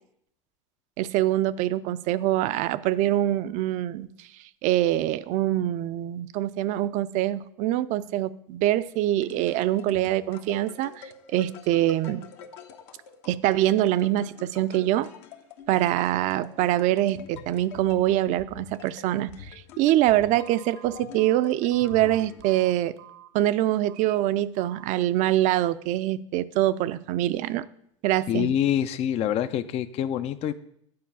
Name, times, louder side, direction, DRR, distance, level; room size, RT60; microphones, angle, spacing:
voice 1, 1.0-4.3 4.6-12.2 13.3-15.1 15.7-22.9 23.3-27.7 28.0-28.5, right 14 dB, 50° right, 15 dB, 0.5 m, -24 dB
sound 1, 8.9-22.8, left 7 dB, 65° left, 1.0 m, -46 dB
Telephone, 20.3-23.3 23.8-24.1 24.5-24.9, right 12 dB, 65° right, 0.9 m, -48 dB
voice 2, 28.3-30.5, left 10 dB, 40° left, 12 dB, 0.5 m, -26 dB
9.5 x 4.6 x 7.0 m, 0.71 s
hypercardioid pair, 85°, 17 cm